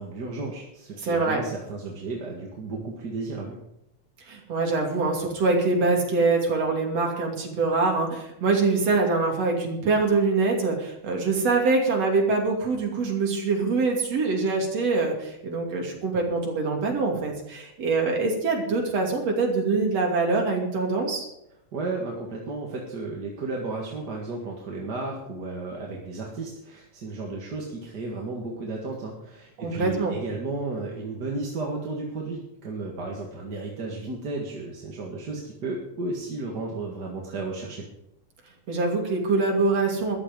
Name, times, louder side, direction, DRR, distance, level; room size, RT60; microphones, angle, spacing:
voice 1, 0.0-3.6 21.7-37.9, right 3 dB, 40° right, -1 dB, 2.1 m, -33 dB
voice 2, 1.0-1.4 4.3-21.3 29.6-30.2 38.7-40.2, right 3 dB, 60° right, 0 dB, 3.8 m, -24 dB
14.0 x 12.0 x 5.3 m, 0.82 s
omnidirectional pair, 3.3 m